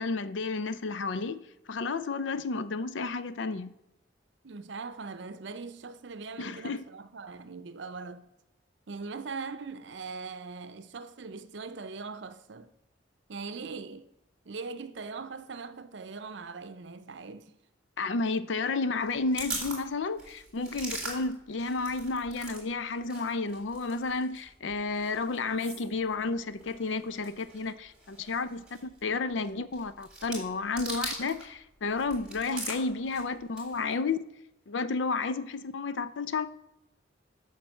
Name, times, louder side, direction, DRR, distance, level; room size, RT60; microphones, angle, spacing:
voice 1, 0.0-3.8 6.4-6.8 18.0-34.2 34.7-36.5, left 3 dB, 80° left, 0.5 m, -32 dB
voice 2, 4.4-8.3 8.9-12.7 13.3-14.1 14.4-17.5, right 4 dB, 70° right, 0.6 m, -41 dB
sound 1, 19.0-22.6 22.9-31.5 31.8-33.9, right 2 dB, 5° right, 2.5 m, -42 dB
7.3 x 5.8 x 6.5 m
head